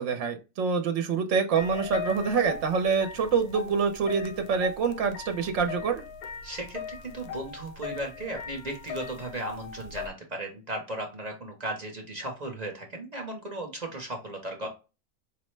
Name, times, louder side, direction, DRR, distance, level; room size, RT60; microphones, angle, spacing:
voice 1, 0.0-6.0, right 5 dB, 65° right, 6 dB, 0.9 m, -26 dB
sound 1, 1.5-10.1, left 6 dB, 85° left, 1.1 m, -39 dB
voice 2, 6.4-14.7, right 1 dB, 40° right, 2 dB, 0.7 m, -36 dB
4.7 x 2.1 x 3.1 m, 0.29 s
omnidirectional pair, 1.5 m